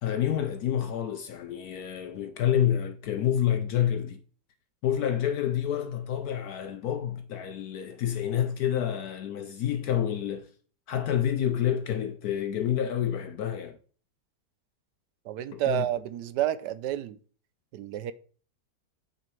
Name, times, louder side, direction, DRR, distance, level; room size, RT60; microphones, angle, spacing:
voice 1, 0.0-4.2 4.8-10.5 10.9-13.8 15.5-15.8, left 10 dB, 70° left, 1.0 m, -28 dB
voice 2, 15.3-17.2 17.7-18.1, right 12 dB, 75° right, 1.2 m, -30 dB
8.1 x 6.1 x 4.5 m
omnidirectional pair, 1.9 m